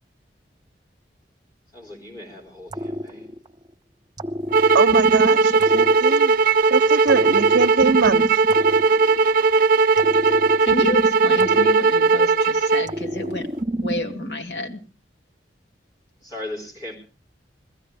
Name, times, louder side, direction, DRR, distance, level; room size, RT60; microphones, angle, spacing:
voice 1, 1.7-3.4 16.2-17.0, left 1 dB, 25° left, -1 dB, 4.1 m, -37 dB
sound 1, 2.7-3.7 4.2-6.6 7.1-9.5 10.0-12.4 12.9-14.3, equal, 25° right, 1.1 m, -29 dB
sound 2, 4.5-12.9, right 4 dB, 50° right, 0.7 m, -18 dB
voice 2, 4.7-6.3 6.7-8.4, right 4 dB, 85° right, 6 dB, 0.7 m, -23 dB
voice 3, 10.6-14.8, left 1 dB, 65° left, 3 dB, 2.3 m, -30 dB
21.5 x 15.0 x 3.4 m, 0.35 s
head